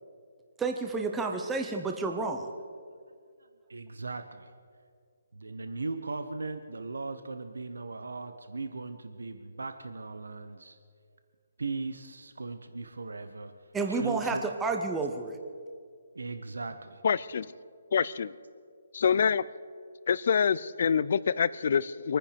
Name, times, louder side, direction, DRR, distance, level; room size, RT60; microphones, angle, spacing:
voice 1, 0.6-2.5 13.7-15.4, right 3 dB, 10° right, 4 dB, 0.9 m, -30 dB
voice 2, 3.7-4.5 5.3-10.8 11.6-13.5 13.9-14.4 16.1-17.0, right 3 dB, 90° right, 8 dB, 1.0 m, -38 dB
voice 3, 17.0-17.5 17.9-18.3 18.9-19.4 20.1-22.2, left 6 dB, 55° left, 18 dB, 0.5 m, -26 dB
24.0 x 10.0 x 5.2 m, 2.1 s
hypercardioid pair, 155°, 0 cm